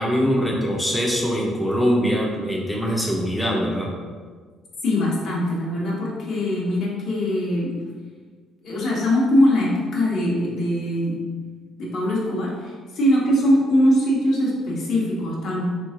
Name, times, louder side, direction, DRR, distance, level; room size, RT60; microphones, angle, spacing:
voice 1, 0.0-3.9, equal, ahead, -3 dB, 0.5 m, -22 dB
voice 2, 4.8-7.7 8.6-11.2 11.8-15.6, left 1 dB, 60° left, -4 dB, 1.0 m, -22 dB
3.4 x 3.0 x 2.5 m, 1.5 s
cardioid pair, 110°, 0 cm